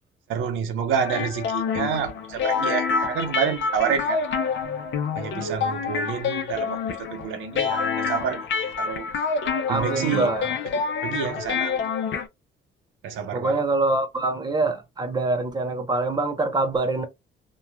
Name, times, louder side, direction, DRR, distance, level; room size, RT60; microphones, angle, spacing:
voice 1, 0.3-4.2 5.1-8.5 8.8-9.1 9.7-10.3 10.7-12.0 13.0-13.6, right 7 dB, 85° right, 0.7 m, -28 dB
sound 1, 1.0-12.3, left 5 dB, 70° left, 0.7 m, -27 dB
voice 2, 9.7-10.5 13.3-17.1, right 3 dB, 20° right, 0.9 m, -24 dB
3.1 x 2.3 x 2.3 m
cardioid pair, 90°, 20 cm